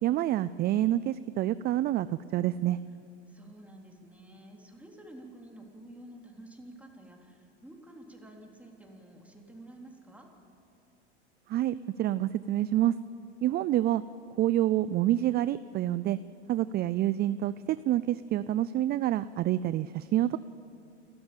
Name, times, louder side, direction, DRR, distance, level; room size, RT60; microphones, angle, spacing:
voice 1, 0.0-2.1 2.3-2.8 11.5-12.9 13.4-14.0 14.4-16.2 16.5-20.4, right 13 dB, 30° right, 15 dB, 0.4 m, -27 dB
voice 2, 3.3-10.3, right 1 dB, 5° right, 0 dB, 3.6 m, -50 dB
28.5 x 13.0 x 8.9 m, 2.7 s
supercardioid pair, 110°, 34 cm